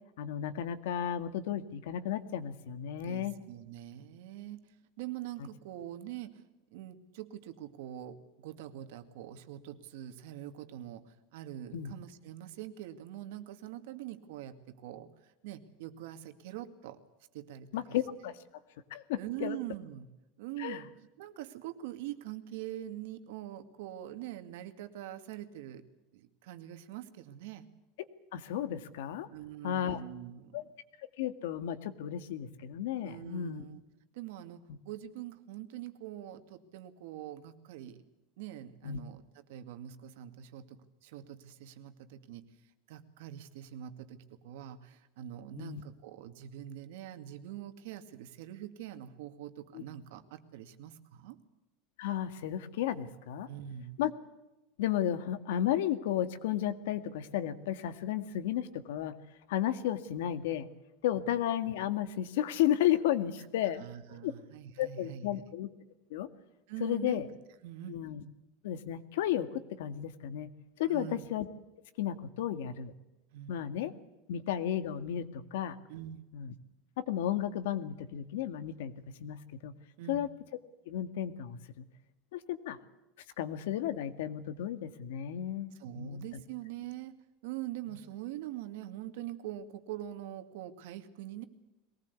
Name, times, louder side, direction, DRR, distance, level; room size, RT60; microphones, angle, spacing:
voice 1, 0.2-3.3 11.7-11.9 17.7-18.3 18.9-19.6 20.6-20.8 28.3-29.3 29.6-30.0 30.5-30.6 31.2-33.6 38.8-39.0 45.6-45.8 49.7-49.8 52.0-53.5 54.0-54.1 54.8-59.1 59.5-60.7 61.0-63.8 64.1-64.3 64.8-65.7 66.1-66.3 66.8-67.2 67.9-68.2 68.6-70.5 70.8-71.5 72.0-72.9 73.5-73.9 74.3-75.8 76.3-76.5 77.0-78.9 79.2-79.4 79.6-79.7 80.1-80.3 80.9-81.9 82.3-82.8 83.4-86.3, left 11 dB, 80° left, 11 dB, 1.9 m, -33 dB
voice 2, 3.0-17.0 17.3-18.0 18.2-18.3 19.2-20.1 20.4-25.8 26.1-27.7 29.3-30.6 33.0-33.8 34.1-38.0 38.4-51.4 53.5-54.0 61.1-61.3 63.8-65.4 66.7-67.3 67.6-68.0 70.8-71.3 73.3-73.6 75.9-76.3 80.0-80.3 85.7-87.2 87.4-91.4, right 12 dB, 65° right, 9 dB, 2.1 m, -44 dB
22.5 x 19.0 x 8.3 m, 0.98 s
supercardioid pair, 170°, 0 cm